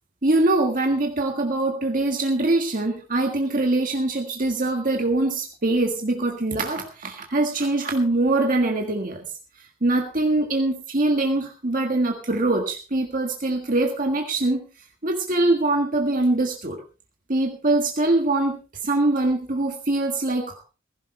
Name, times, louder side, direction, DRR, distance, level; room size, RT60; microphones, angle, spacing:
voice 1, 0.2-9.3 9.8-14.6 15.0-16.8 17.3-20.6, right 2 dB, 40° right, 3 dB, 1.6 m, -23 dB
16.0 x 15.5 x 3.3 m, 0.34 s
head